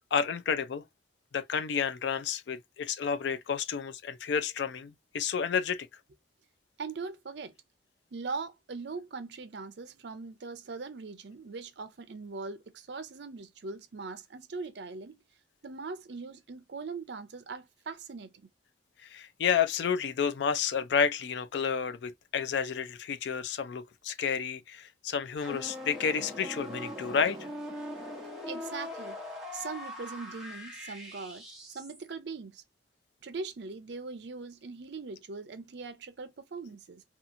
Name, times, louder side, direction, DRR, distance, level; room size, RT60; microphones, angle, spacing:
voice 1, 0.1-0.8 1.3-5.9 19.0-27.4, left 7 dB, 70° left, 0.4 m, -30 dB
voice 2, 6.8-7.5 8.1-15.2 15.6-18.3 28.5-29.2 29.5-32.6 33.2-37.0, right 4 dB, 65° right, 0.5 m, -41 dB
sound 1, 25.4-32.1, left 1 dB, 5° right, 0.7 m, -41 dB
2.8 x 2.4 x 2.5 m
head